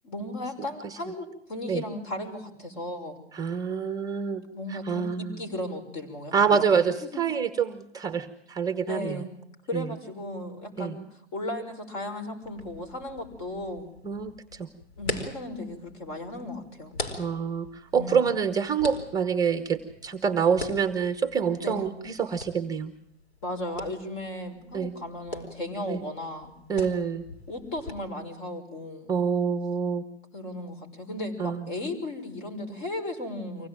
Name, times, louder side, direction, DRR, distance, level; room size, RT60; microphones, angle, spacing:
voice 1, 0.0-3.2 4.5-7.2 8.9-9.3 9.7-13.9 15.0-17.0 17.9-18.2 21.6-21.9 23.4-26.5 27.5-29.1 30.3-33.7, left 1 dB, 45° left, 6 dB, 6.0 m, -35 dB
voice 2, 3.3-4.4 4.9-5.4 6.3-9.2 9.7-9.8 10.8-10.9 14.0-14.7 17.2-22.9 24.7-24.9 25.9-26.0 26.7-27.2 29.1-30.0 31.4-31.7, right 6 dB, 10° right, 9 dB, 0.9 m, -26 dB
sound 1, 12.4-27.9, left 1 dB, 60° left, 4.7 m, -42 dB
24.5 x 17.5 x 9.1 m, 0.75 s
hypercardioid pair, 130°, 35 cm